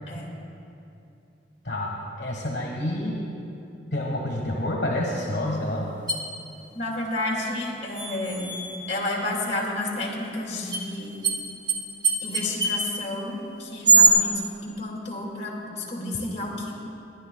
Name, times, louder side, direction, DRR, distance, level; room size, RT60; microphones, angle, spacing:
voice 1, 1.6-3.2 3.9-5.9, left 1 dB, 65° left, -2 dB, 1.5 m, -28 dB
sound 1, 6.1-6.2 7.9-9.0 10.7-10.8 11.2-11.4 11.7-11.8 12.0-12.9 13.8-14.1, right 4 dB, 25° right, 1.1 m, -21 dB
voice 2, 6.7-8.6 8.9-11.2 12.2-16.7, left 2 dB, 35° left, -3 dB, 2.3 m, -31 dB
23.5 x 10.5 x 2.3 m, 2.8 s
head